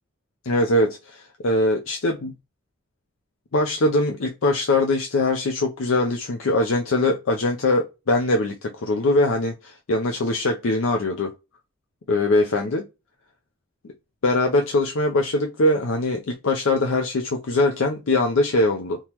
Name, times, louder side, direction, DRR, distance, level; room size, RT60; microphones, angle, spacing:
voice 1, 0.4-2.3 3.5-11.3 12.1-12.8 14.2-19.0, left 2 dB, 90° left, 0.6 m, -22 dB
3.6 x 3.0 x 2.9 m
head